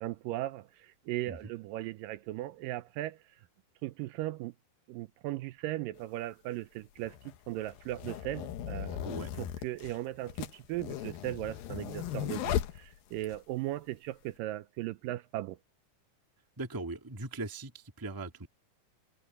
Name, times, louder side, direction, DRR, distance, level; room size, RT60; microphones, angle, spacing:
voice 1, 0.0-3.2 3.8-4.5 4.9-9.1 9.4-15.6, right 15 dB, 80° right, 2.2 m, -37 dB
sound 1, 6.0-6.1 7.0-13.4, left 11 dB, 80° left, 2.9 m, -37 dB
voice 2, 16.6-18.5, right 2 dB, 10° right, 0.9 m, -39 dB
omnidirectional pair, 4.1 m